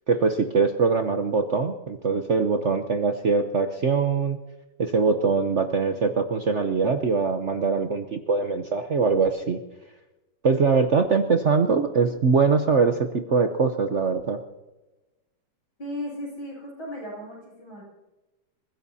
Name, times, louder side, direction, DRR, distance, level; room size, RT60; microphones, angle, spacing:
voice 1, 0.1-4.4 4.8-9.6 10.4-14.4, right 5 dB, 55° right, 6 dB, 0.8 m, -22 dB
voice 2, 15.8-17.8, left 1 dB, 85° left, -3 dB, 8.3 m, -36 dB
28.5 x 15.5 x 2.8 m, 1.1 s
omnidirectional pair, 2.2 m